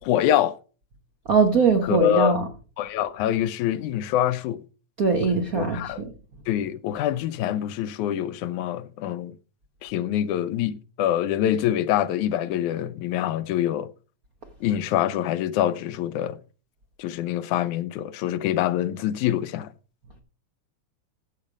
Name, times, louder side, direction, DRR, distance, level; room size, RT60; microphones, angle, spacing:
voice 1, 0.0-0.6 1.8-2.4 2.8-4.6 5.6-6.0 6.5-9.3 9.8-13.9 14.6-16.4 17.0-19.7, left 11 dB, 90° left, 2.2 m, -25 dB
voice 2, 1.3-2.4 5.0-5.8, right 5 dB, 65° right, 0.8 m, -21 dB
15.0 x 6.7 x 4.8 m
omnidirectional pair, 3.4 m